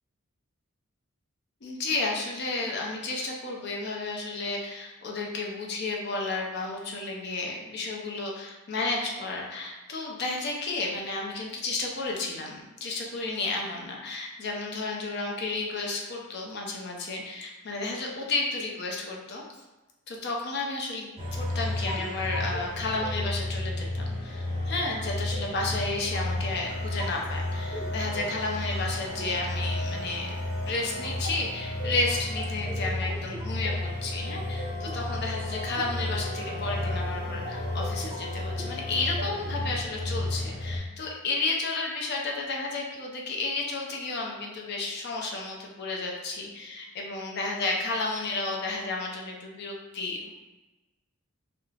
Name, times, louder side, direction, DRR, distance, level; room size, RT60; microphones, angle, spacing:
voice 1, 1.6-19.4 20.1-30.3 30.7-50.3, left 3 dB, 50° left, -1 dB, 0.5 m, -32 dB
sound 1, 21.2-40.8, left 1 dB, 25° right, 0.5 m, -32 dB
2.3 x 2.0 x 3.2 m, 1.1 s
head